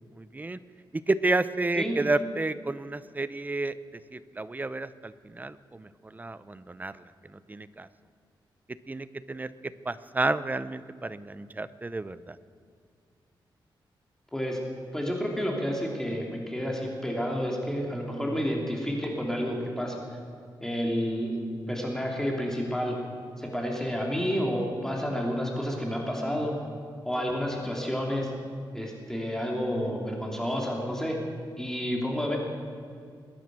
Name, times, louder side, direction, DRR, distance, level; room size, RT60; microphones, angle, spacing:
voice 1, 0.2-0.6 0.9-3.7 4.1-7.0 7.3-7.9 8.9-12.4, right 2 dB, 20° right, 15 dB, 0.6 m, -31 dB
voice 2, 14.9-20.0 20.6-23.0 23.4-26.6 27.0-28.3 28.7-31.2 31.6-32.4, equal, 5° left, -1 dB, 2.8 m, -30 dB
21.5 x 10.5 x 6.1 m, 2.3 s
cardioid pair, 95°, 9 cm